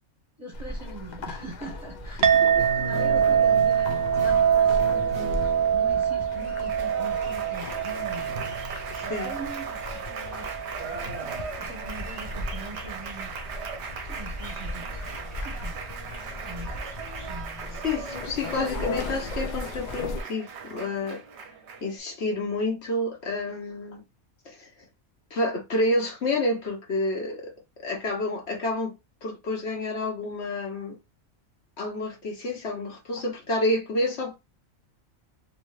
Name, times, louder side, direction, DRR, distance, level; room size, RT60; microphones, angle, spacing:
voice 1, 0.4-3.9 4.2-5.4 5.7-8.4 9.0-10.5 10.9-13.3 14.1-15.0 15.4-15.8 16.4-16.9 17.3-17.8 18.2-18.3, right 2 dB, 25° right, 0.8 m, -42 dB
sound 1, 0.5-20.2, left 2 dB, 80° left, 0.4 m, -38 dB
voice 2, 2.2-2.6 8.9-9.3 17.8-21.2 21.8-24.0 24.4-24.7 25.3-27.5 27.8-28.9 29.2-31.0 31.8-34.3, left 2 dB, 55° left, 1.2 m, -29 dB
Chink clink, 2.2-10.9, right 8 dB, 90° right, 1.0 m, -24 dB
Applause, 2.3-22.0, right 4 dB, 60° right, 0.8 m, -37 dB
2.9 x 2.8 x 3.1 m
omnidirectional pair, 1.4 m